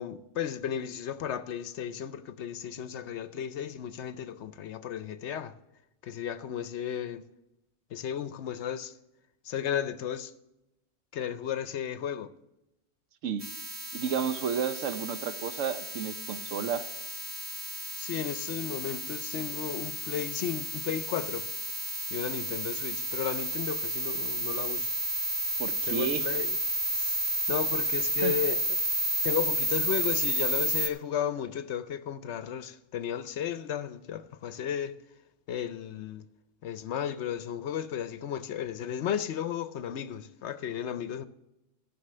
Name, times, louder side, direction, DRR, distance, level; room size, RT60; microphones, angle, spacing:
voice 1, 0.0-5.5 6.0-7.2 7.9-8.9 9.4-10.3 11.1-12.3 18.0-21.5 22.1-24.9 25.9-26.6 26.9-27.2 27.5-28.6 29.2-35.0 35.5-36.3 36.6-41.2, left 9 dB, 65° left, 0.9 m, -34 dB
sound 1, 13.4-30.9, right 1 dB, 10° right, 0.6 m, -32 dB
voice 2, 13.9-16.9 25.6-26.2 28.2-28.3, right 7 dB, 75° right, 1.1 m, -32 dB
13.0 x 6.2 x 6.6 m
omnidirectional pair, 1.3 m